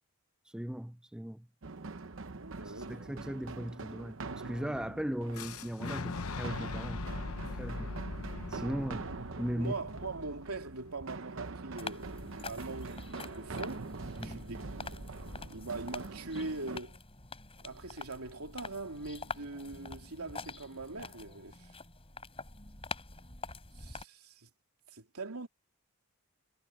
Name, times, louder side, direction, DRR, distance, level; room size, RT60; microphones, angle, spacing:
voice 1, 0.5-1.5 2.6-4.2 4.4-7.0 7.6-7.9 8.5-9.1 9.4-9.7 14.2-14.4, equal, 5° right, 0.4 m, -38 dB
sound 1, 1.6-16.8, right 3 dB, 60° right, 0.9 m, -44 dB
voice 2, 2.3-3.1 9.6-13.9 14.2-14.6 14.9-15.0 15.5-17.0 17.6-21.8 23.7-24.5 24.9-25.5, right 3 dB, 90° right, 3.0 m, -42 dB
Boom, 5.3-11.2, left 3 dB, 75° left, 1.1 m, -41 dB
sound 2, 11.8-24.0, left 4 dB, 25° left, 5.0 m, -46 dB
head